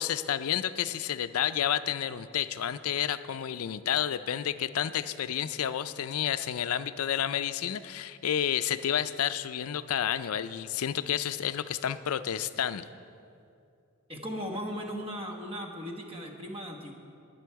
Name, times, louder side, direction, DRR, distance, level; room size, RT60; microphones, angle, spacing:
voice 1, 0.0-12.8, left 9 dB, 75° left, 13 dB, 0.4 m, -30 dB
voice 2, 14.1-16.9, equal, 25° right, 2 dB, 1.2 m, -37 dB
20.0 x 7.0 x 4.6 m, 2.5 s
head